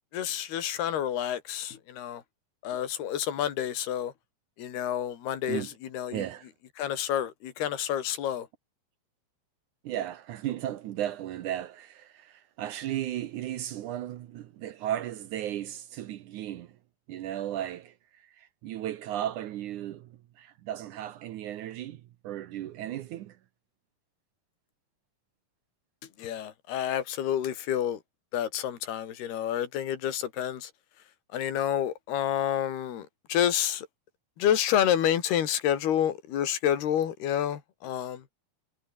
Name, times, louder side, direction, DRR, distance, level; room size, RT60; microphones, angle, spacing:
voice 1, 0.1-2.2 2.6-4.1 4.6-6.2 6.8-8.5 26.2-28.0 28.3-30.7 31.3-33.9 34.4-38.2, left 10 dB, 75° left, 4.6 m, -29 dB
voice 2, 6.1-6.5 9.8-16.7 17.1-17.9 18.4-23.4, right 12 dB, 70° right, 1.9 m, -35 dB
omnidirectional pair, 4.7 m